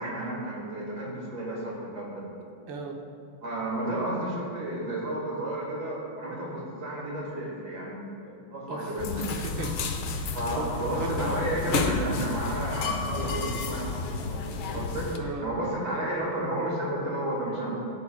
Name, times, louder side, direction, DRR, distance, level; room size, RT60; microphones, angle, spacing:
voice 1, 0.0-2.3 3.4-9.2 10.3-14.4 14.7-17.8, right 1 dB, 50° right, -4 dB, 2.3 m, -32 dB
voice 2, 2.7-3.0 8.7-8.9 9.3-10.0 10.5-11.3 15.1-15.4, right 2 dB, 70° right, 2 dB, 1.5 m, -35 dB
sound 1, 9.0-15.2, left 4 dB, 75° left, 1.5 m, -31 dB
14.5 x 7.0 x 2.3 m, 2.5 s
omnidirectional pair, 2.3 m